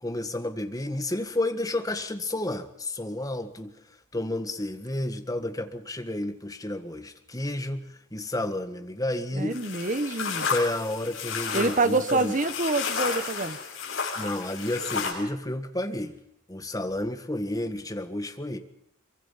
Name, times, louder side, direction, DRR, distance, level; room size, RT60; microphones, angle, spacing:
voice 1, 0.0-3.7 4.1-7.8 8.1-9.6 10.5-12.4 14.2-16.1 16.5-18.6, left 1 dB, 15° left, 7 dB, 1.7 m, -31 dB
voice 2, 9.3-10.5 11.5-13.6, right 3 dB, 35° right, 11 dB, 1.2 m, -26 dB
sound 1, 9.5-15.1, left 5 dB, 70° left, 7.1 m, -32 dB
24.0 x 23.5 x 5.8 m, 0.76 s
head